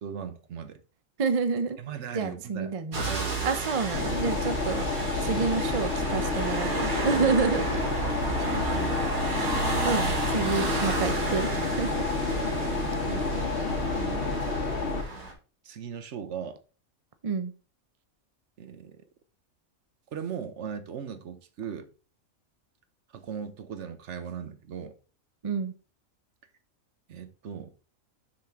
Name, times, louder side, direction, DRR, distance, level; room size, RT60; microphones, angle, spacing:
voice 1, 0.0-0.8 1.8-3.4 5.2-5.4 8.4-9.1 13.0-13.3 13.8-14.3 15.6-16.6 18.6-19.0 20.1-21.9 23.1-24.9 27.1-27.7, right 7 dB, 60° right, 1.1 m, -38 dB
voice 2, 1.2-1.8 2.1-3.0 3.4-4.8 5.2-7.8 8.4-8.6 9.8-12.0 17.2-17.5 25.4-25.7, right 5 dB, 40° right, 0.5 m, -29 dB
sound 1, 2.9-15.3, right 2 dB, 85° right, 2.7 m, -32 dB
sound 2, 3.9-15.0, left 3 dB, 55° left, 1.1 m, -30 dB
6.7 x 5.9 x 3.6 m
omnidirectional pair, 1.4 m